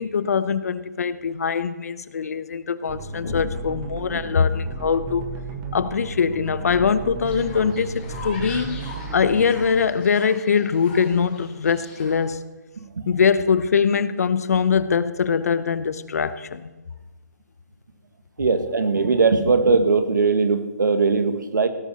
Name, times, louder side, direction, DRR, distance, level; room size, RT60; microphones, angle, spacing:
voice 1, 0.0-5.3 5.7-8.9 9.1-12.4 13.1-16.7, left 6 dB, 55° left, 0.8 m, -22 dB
sound 1, 2.9-9.6, right 4 dB, 20° right, 1.3 m, -34 dB
Fowl, 7.2-12.2, left 3 dB, 20° left, 5.7 m, -41 dB
voice 2, 18.4-21.7, right 4 dB, 90° right, 1.8 m, -19 dB
17.0 x 12.0 x 4.3 m
hypercardioid pair, 170°, 10 cm